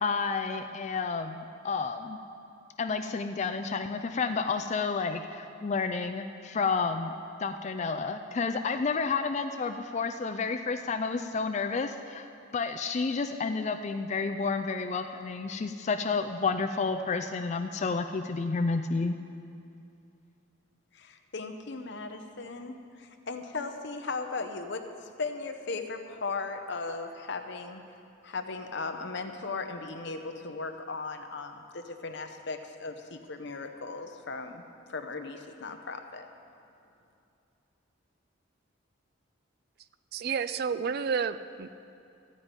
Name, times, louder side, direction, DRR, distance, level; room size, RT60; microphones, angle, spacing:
voice 1, 0.0-2.2 2.8-7.1 7.4-12.3 12.5-19.2, left 4 dB, 35° left, 7 dB, 0.4 m, -30 dB
voice 2, 20.9-24.9 25.2-27.8 28.2-34.6 34.9-36.3, left 3 dB, 60° left, 6 dB, 0.8 m, -37 dB
voice 3, 40.1-41.7, right 6 dB, 50° right, 13 dB, 0.4 m, -30 dB
14.0 x 5.3 x 8.8 m, 2.6 s
head